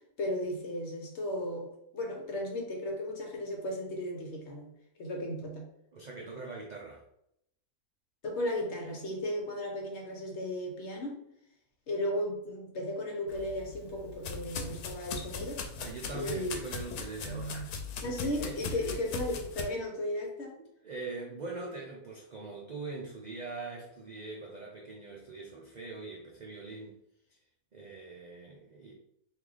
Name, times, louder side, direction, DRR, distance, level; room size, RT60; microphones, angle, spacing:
voice 1, 0.2-4.7 5.0-5.7 8.2-11.2 11.9-15.6 16.1-16.6 18.0-20.6, left 1 dB, 55° left, 1 dB, 1.0 m, -35 dB
voice 2, 5.9-7.0 15.8-17.7 18.2-18.9 19.6-19.7 20.6-26.9 27.3-27.4 27.7-28.9, right 3 dB, 65° right, -2 dB, 0.4 m, -42 dB
sound 1, 13.3-19.6, left 4 dB, 90° left, 1.1 m, -39 dB
3.1 x 2.7 x 3.7 m, 0.76 s
omnidirectional pair, 1.5 m